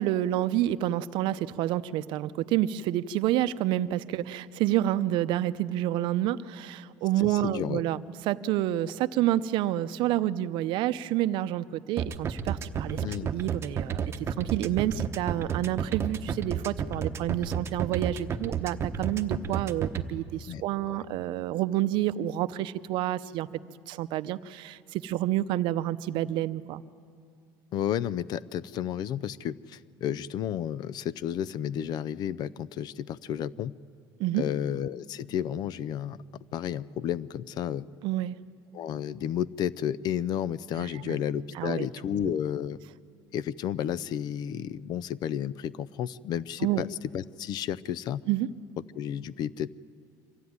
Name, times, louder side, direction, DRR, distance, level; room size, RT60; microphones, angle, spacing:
voice 1, 0.0-13.0 13.3-23.5 23.9-26.8 34.2-34.4 38.0-38.4 40.8-41.2 41.5-41.9 46.6-46.8 48.3-48.5, right 13 dB, 70° right, 14 dB, 0.6 m, -29 dB
voice 2, 7.2-7.8 13.0-13.3 20.5-20.6 20.9-21.0 27.7-33.8 34.3-36.2 36.5-37.9 38.7-42.8 43.3-48.2 48.9-49.7, left 10 dB, 50° left, 19 dB, 0.5 m, -32 dB
sound 1, 12.0-20.0, right 8 dB, 30° right, 0.9 m, -31 dB
25.0 x 15.0 x 9.5 m, 2.2 s
cardioid pair, 145°, 9 cm